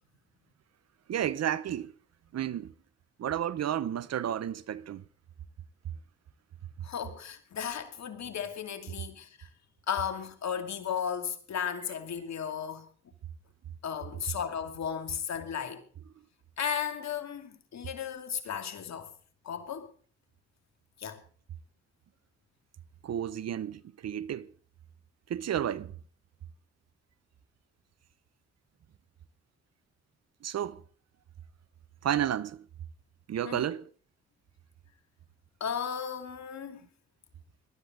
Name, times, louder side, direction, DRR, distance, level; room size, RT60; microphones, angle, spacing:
voice 1, 1.1-1.9 2.3-2.7 3.2-5.0 23.0-24.5 25.3-25.9 30.4-30.8 32.0-32.7 33.3-33.9, right 10 dB, 60° right, 0.9 m, -32 dB
voice 2, 6.8-9.5 9.9-12.9 13.8-15.8 16.6-19.1 19.4-19.9 21.0-21.2 33.4-33.7 35.6-36.8, left 8 dB, 65° left, 2.5 m, -35 dB
20.0 x 12.5 x 3.9 m
supercardioid pair, 45°, 29 cm